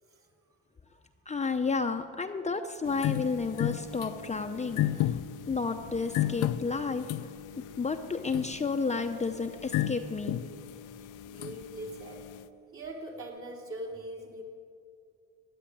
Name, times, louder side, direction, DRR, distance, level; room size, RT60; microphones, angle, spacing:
voice 1, 1.3-5.2 5.5-7.1 7.8-10.4, left 4 dB, 25° left, 6 dB, 0.7 m, -31 dB
sound 1, 2.9-12.5, left 12 dB, 80° left, 0.6 m, -34 dB
voice 2, 10.9-12.2 12.7-14.4, right 1 dB, 45° right, -1 dB, 3.6 m, -42 dB
15.0 x 9.9 x 9.8 m, 2.5 s
cardioid pair, 90°, 30 cm